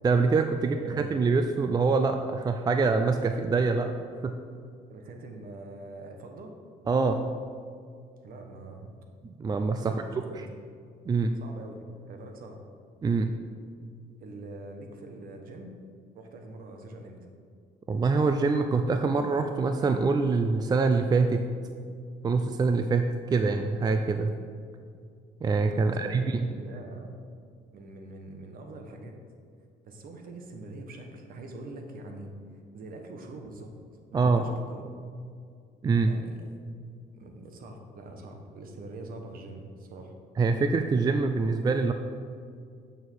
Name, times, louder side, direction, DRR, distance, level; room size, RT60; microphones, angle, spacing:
voice 1, 0.0-3.9 4.2-4.4 6.9-7.3 9.2-10.0 11.1-11.4 13.0-13.3 17.9-21.4 22.2-24.3 25.4-26.5 34.1-34.5 35.8-36.2 40.4-41.9, right 4 dB, 25° right, 6 dB, 0.4 m, -25 dB
voice 2, 0.6-1.1 4.9-6.6 8.2-8.9 9.8-10.4 11.4-12.6 14.2-15.8 16.1-17.3 25.8-27.1 27.7-29.2 29.8-33.7 34.1-34.9 36.0-36.4 37.1-40.1, right 2 dB, 60° right, 3 dB, 1.3 m, -44 dB
8.8 x 6.5 x 4.7 m, 2.3 s
cardioid pair, 110°, 17 cm